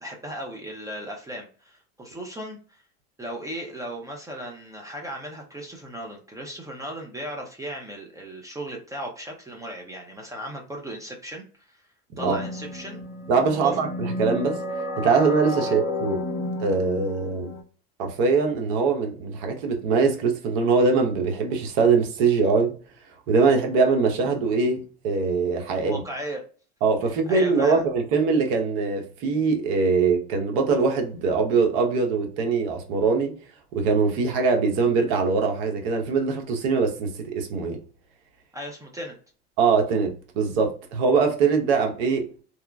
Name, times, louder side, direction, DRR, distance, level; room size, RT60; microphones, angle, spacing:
voice 1, 0.0-2.8 3.2-11.8 12.2-13.0 13.5-13.7 15.6-15.7 25.7-26.4 27.3-27.8 38.5-39.1, equal, 10° right, 0.5 m, -36 dB
sound 1, 12.2-17.6, left 2 dB, 45° left, 0.7 m, -32 dB
voice 2, 13.3-14.6 15.0-16.2 16.6-17.5 18.0-22.7 23.3-26.0 26.8-33.3 33.7-37.8 39.6-40.1 40.4-42.3, right 4 dB, 70° right, 0.9 m, -22 dB
2.9 x 2.3 x 2.2 m
supercardioid pair, 120°, 30 cm